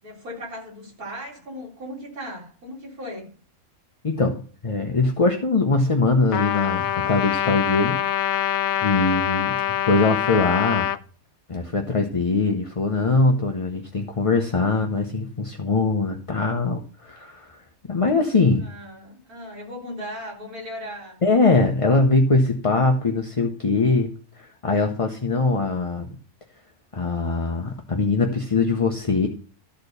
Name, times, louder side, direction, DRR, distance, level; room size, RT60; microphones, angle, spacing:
voice 1, 0.0-3.3 18.6-21.2, equal, 85° right, -3 dB, 4.3 m, -37 dB
voice 2, 4.0-8.0 8.8-10.9 11.5-17.6 17.9-18.7 21.2-24.1 24.4-26.2 26.9-29.3, left 3 dB, 30° left, 4 dB, 0.7 m, -22 dB
Trumpet, 6.3-11.0, left 11 dB, 75° left, 1.0 m, -24 dB
12.5 x 4.4 x 6.6 m, 0.42 s
omnidirectional pair, 1.5 m